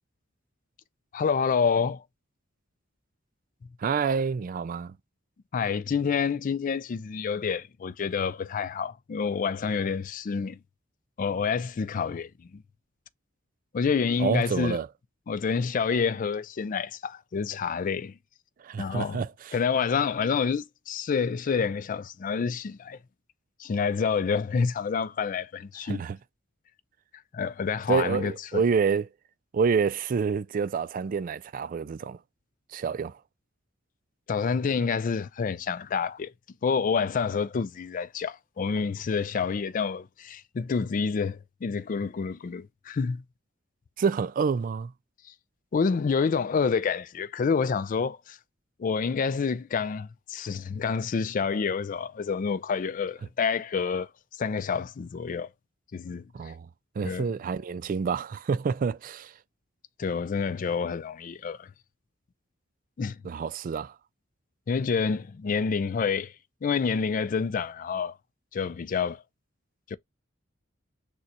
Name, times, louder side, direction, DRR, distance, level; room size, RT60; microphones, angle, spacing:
voice 1, 1.1-2.0 5.5-10.6 11.2-12.6 13.7-14.8 15.3-18.2 18.8-19.2 19.5-23.0 23.6-26.0 27.3-28.6 34.3-36.3 36.6-43.2 45.7-48.4 48.8-55.5 55.9-56.2 57.0-57.3 60.0-61.7 63.0-63.2 64.7-66.3 66.6-68.2 68.5-69.2 69.9-70.0, left 5 dB, 40° left, 0.3 m, -28 dB
voice 2, 3.8-5.0 14.2-14.9 18.6-19.5 25.9-26.2 27.9-29.1 29.5-32.2 32.7-33.2 44.0-44.9 56.3-56.7 57.0-59.3 63.2-64.0, right 5 dB, 45° right, 0.3 m, -28 dB
6.5 x 2.3 x 2.8 m
head